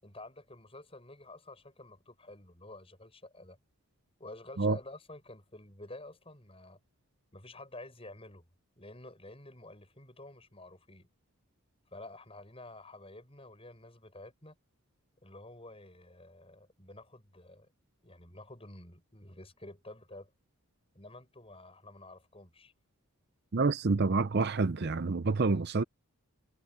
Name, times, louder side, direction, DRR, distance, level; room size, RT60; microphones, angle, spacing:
voice 1, 0.0-3.6 4.2-6.8 7.3-8.4 8.8-11.1 11.9-14.6 15.2-17.7 18.0-20.3 20.9-22.7, left 2 dB, 25° left, 6.6 m, -50 dB
voice 2, 23.5-25.8, right 3 dB, 45° right, 0.6 m, -28 dB
head